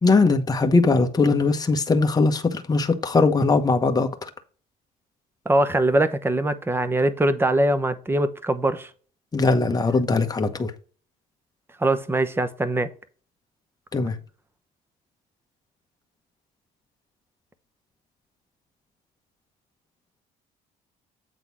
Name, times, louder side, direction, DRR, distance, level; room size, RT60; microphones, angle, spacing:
voice 1, 0.0-4.3 9.3-10.7 13.9-14.2, left 3 dB, 20° left, 1.1 m, -20 dB
voice 2, 5.5-8.9 11.8-12.9, right 1 dB, 15° right, 0.9 m, -22 dB
8.2 x 3.9 x 6.2 m
cardioid pair, 110°, 17 cm